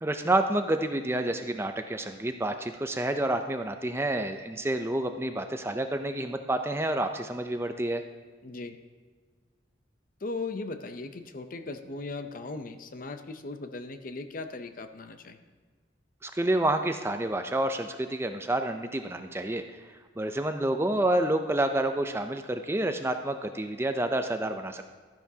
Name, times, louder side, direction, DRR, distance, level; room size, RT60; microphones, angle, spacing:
voice 1, 0.0-8.0 16.2-19.6 20.2-24.8, right 1 dB, 15° right, 7 dB, 0.5 m, -29 dB
voice 2, 8.4-8.8 10.2-15.4, left 3 dB, 45° left, 9 dB, 0.6 m, -38 dB
13.5 x 10.5 x 2.8 m, 1.5 s
head